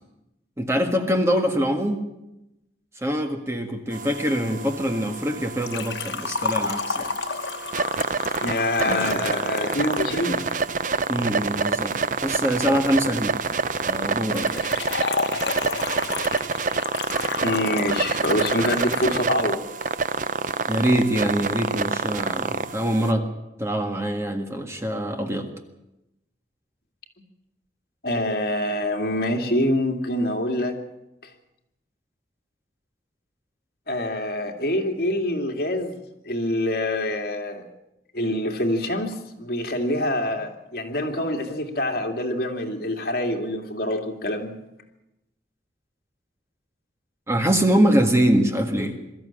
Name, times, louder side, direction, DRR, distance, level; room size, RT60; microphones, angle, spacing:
voice 1, 0.6-2.0 3.0-7.1 8.9-9.2 11.1-11.9 12.2-13.3 13.8-14.6 20.7-23.3 23.6-25.5 47.3-49.0, equal, 15° right, 4 dB, 1.7 m, -24 dB
sound 1, 3.9-23.1, right 4 dB, 45° right, 0.7 m, -27 dB
Liquid, 5.6-10.6 14.3-19.2 19.4-19.5 20.4-20.5, left 5 dB, 80° left, 1.1 m, -31 dB
voice 2, 8.4-10.5 17.4-19.6 28.0-30.8 33.9-36.0 36.2-37.6 38.1-44.5, left 1 dB, 55° left, 3 dB, 2.5 m, -25 dB
23.0 x 13.5 x 8.8 m, 0.91 s
head